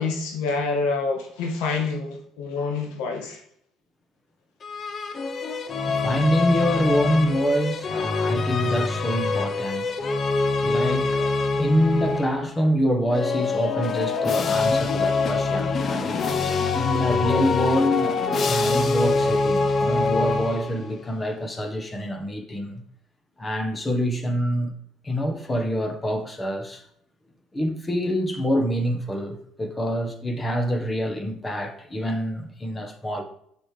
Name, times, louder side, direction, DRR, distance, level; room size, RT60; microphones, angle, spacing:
voice 1, 0.0-3.4 16.8-16.9, left 4 dB, 85° left, 1.9 m, -27 dB
sound 1, 4.6-12.5 13.1-21.0, left 4 dB, 45° left, 0.7 m, -24 dB
voice 2, 5.9-10.0 10.6-16.2 16.7-18.2 18.4-22.8 23.4-24.7 25.0-26.9 27.5-33.2, equal, 20° left, 1.3 m, -26 dB
6.4 x 6.1 x 3.3 m
supercardioid pair, 75°, 0 cm